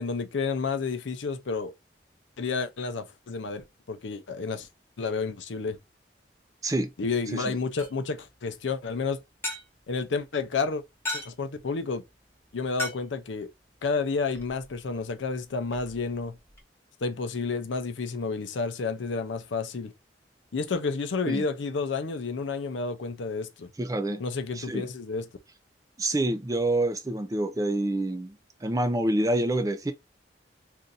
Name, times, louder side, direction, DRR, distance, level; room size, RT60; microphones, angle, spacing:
voice 1, 0.0-1.7 2.4-4.7 5.0-5.8 7.0-9.2 9.9-10.8 11.1-12.0 12.5-13.5 13.8-16.4 17.0-19.9 20.5-23.7 24.2-25.3, left 4 dB, 90° left, 0.5 m, -30 dB
sound 1, 7.3-16.6, left 2 dB, 15° left, 0.9 m, -42 dB
voice 2, 7.3-7.6 21.3-21.4 23.8-24.2 24.5-24.9 26.0-29.9, right 1 dB, 20° right, 0.4 m, -27 dB
2.6 x 2.5 x 3.9 m
head